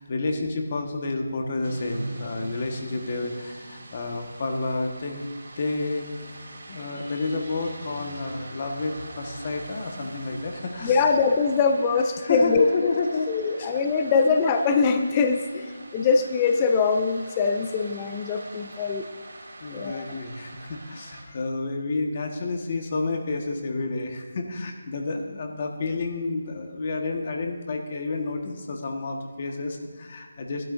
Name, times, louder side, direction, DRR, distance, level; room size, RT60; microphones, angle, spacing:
voice 1, 0.0-5.2 5.6-6.1 6.7-11.1 12.2-13.3 13.6-13.7 19.6-30.6, left 3 dB, 35° left, 3 dB, 1.4 m, -30 dB
sound 1, 1.6-21.2, right 2 dB, 60° right, 3.1 m, -43 dB
voice 2, 10.8-12.9 13.3-19.1 19.7-20.1, left 5 dB, 20° left, 6 dB, 0.5 m, -23 dB
17.5 x 12.0 x 2.6 m, 1.5 s
figure-of-eight pair, 170°, 0 cm